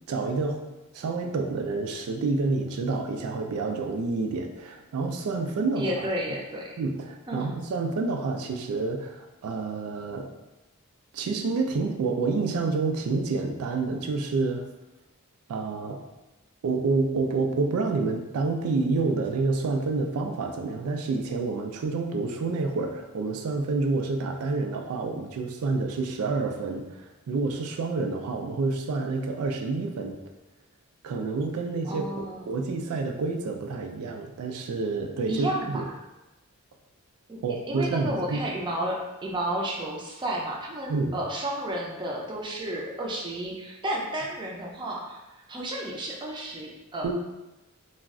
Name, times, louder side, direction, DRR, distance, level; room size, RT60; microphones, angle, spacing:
voice 1, 0.1-0.6 0.9-6.1 6.8-10.3 11.1-14.7 15.5-16.0 16.6-30.2 31.0-35.8 37.4-38.4 40.9-41.2 47.0-47.1, right 3 dB, 90° right, 4 dB, 0.3 m, -28 dB
voice 2, 5.8-6.8 7.3-7.6 31.8-32.5 35.3-35.9 37.3-37.4 37.7-45.2 45.5-47.1, right 1 dB, 20° right, -2 dB, 0.4 m, -32 dB
2.3 x 2.1 x 3.5 m, 1.0 s
head